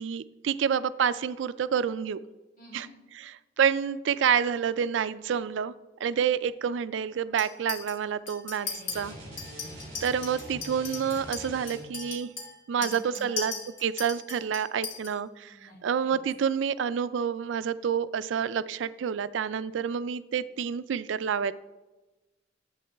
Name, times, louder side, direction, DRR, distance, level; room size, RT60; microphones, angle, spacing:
voice 1, 0.0-2.2 2.7-2.9 3.2-5.7 6.0-8.7 8.9-9.1 10.0-12.3 12.7-13.5 13.8-21.5, right 7 dB, 80° right, 16 dB, 0.4 m, -28 dB
voice 2, 2.6-2.9 8.6-9.8 12.8-13.5 15.5-16.2, equal, 45° left, -8 dB, 3.1 m, -50 dB
Chink clink, 7.4-7.9 8.3-9.0 9.4-15.1, left 5 dB, 80° left, 2.1 m, -38 dB
sound 1, 8.9-12.1, equal, 35° right, 2.8 m, -44 dB
11.5 x 7.9 x 3.4 m, 1.1 s
head